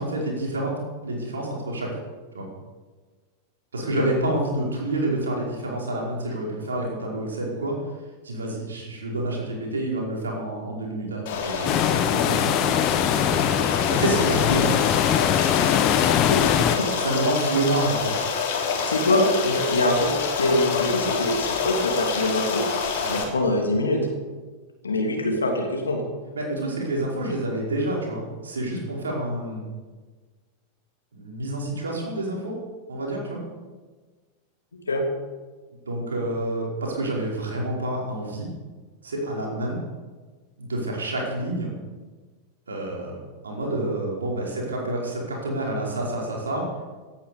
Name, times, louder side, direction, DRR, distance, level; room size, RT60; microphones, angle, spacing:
voice 1, 0.0-2.0 2.3-2.5 3.7-7.8 8.2-12.8 13.1-13.5 13.9-14.8 17.0-18.1 23.0-23.2 26.3-29.7 31.1-32.5 32.9-33.4 35.8-38.5 39.0-39.8 40.6-41.7 42.7-43.2 43.4-46.7, right 1 dB, 70° right, -2 dB, 4.9 m, -28 dB
Stream, 11.3-23.2, left 6 dB, 55° left, 3.6 m, -27 dB
sound 1, 11.6-16.8, left 10 dB, 35° left, 1.1 m, -22 dB
voice 2, 16.2-16.9 18.9-22.6 23.1-24.0 24.8-26.0 34.9-35.1, left 1 dB, 75° left, 1 dB, 3.0 m, -24 dB
17.5 x 10.5 x 7.1 m, 1.4 s
figure-of-eight pair, 90°, 0 cm